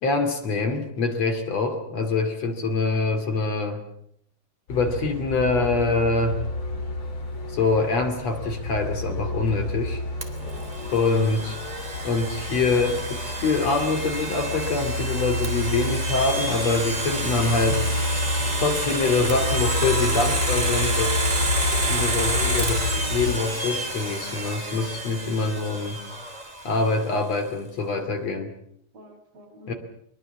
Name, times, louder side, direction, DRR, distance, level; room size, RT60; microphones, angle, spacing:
voice 1, 0.0-3.8 4.7-6.4 7.5-10.0 10.9-11.6 12.0-17.8 18.6-21.2 21.8-26.0 26.7-28.5 29.7-29.8, left 3 dB, 55° left, 6 dB, 3.6 m, -25 dB
Truck, 4.7-23.4, left 2 dB, 35° left, 3.5 m, -29 dB
Domestic sounds home sounds, 10.2-27.0, right 2 dB, 15° right, 2.4 m, -29 dB
voice 2, 10.4-11.0 28.9-29.8, equal, 50° right, 1 dB, 7.2 m, -48 dB
23.5 x 23.0 x 7.2 m, 0.71 s
omnidirectional pair, 3.7 m